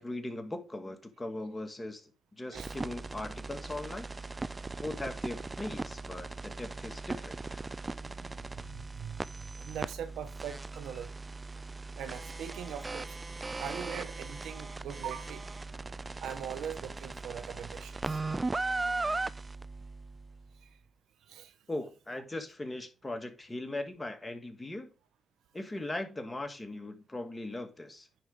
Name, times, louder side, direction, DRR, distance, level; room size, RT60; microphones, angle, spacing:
voice 1, 0.0-2.0 2.4-4.1 4.8-7.4 21.7-24.9 25.5-28.1, left 1 dB, 20° left, 1.9 m, -39 dB
sound 1, 2.6-20.4, right 3 dB, 25° right, 0.4 m, -38 dB
voice 2, 7.9-11.2 12.0-13.2 13.6-15.5 16.2-18.3 20.6-20.7 21.3-21.5, right 8 dB, 85° right, 1.1 m, -42 dB
10.5 x 4.6 x 3.7 m
cardioid pair, 75°, 0 cm